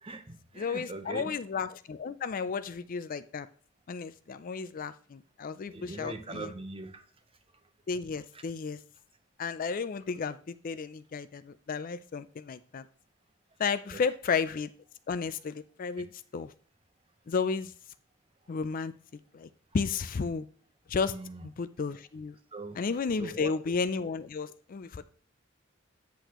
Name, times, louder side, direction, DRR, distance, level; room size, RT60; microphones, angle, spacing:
voice 1, 0.0-1.2 5.7-7.0 8.3-8.4 13.9-14.0 16.0-16.1 21.1-21.5 22.5-22.8 23.2-23.5, right 2 dB, 30° right, 0.8 m, -41 dB
voice 2, 0.6-3.5 3.9-6.5 7.9-8.8 9.4-12.8 13.6-14.7 15.1-16.1 16.3-16.5 17.3-17.7 18.5-18.9 19.3-19.5 19.7-20.5 20.9-21.2 21.4-22.4 22.8-25.1, left 5 dB, 45° left, 0.4 m, -33 dB
8.4 x 7.9 x 3.0 m
head